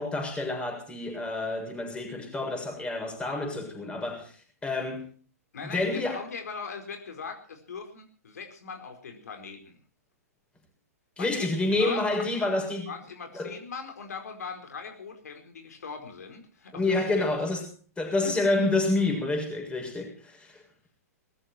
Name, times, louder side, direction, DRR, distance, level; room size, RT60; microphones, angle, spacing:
voice 1, 0.0-4.3 4.6-5.0 5.6-6.2 11.2-12.9 13.3-13.5 16.7-17.7 18.0-20.6, left 2 dB, 10° left, 7.0 m, -28 dB
voice 2, 5.5-9.8 11.2-12.4 12.9-17.3, left 5 dB, 75° left, 4.5 m, -40 dB
20.0 x 15.0 x 4.5 m
hypercardioid pair, 120°, 9 cm